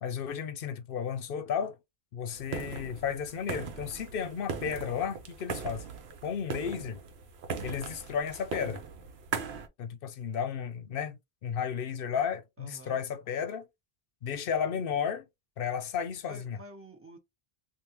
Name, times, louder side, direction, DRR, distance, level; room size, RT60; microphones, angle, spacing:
voice 1, 0.0-1.8 2.1-5.8 6.2-7.0 7.6-8.8 9.8-13.7 14.2-15.3 15.6-16.6, left 7 dB, 65° left, 0.8 m, -33 dB
sound 1, 2.3-9.7, right 5 dB, 80° right, 1.0 m, -39 dB
voice 2, 12.6-13.0 16.3-17.2, equal, 15° right, 1.0 m, -49 dB
3.4 x 2.4 x 2.9 m
omnidirectional pair, 1.1 m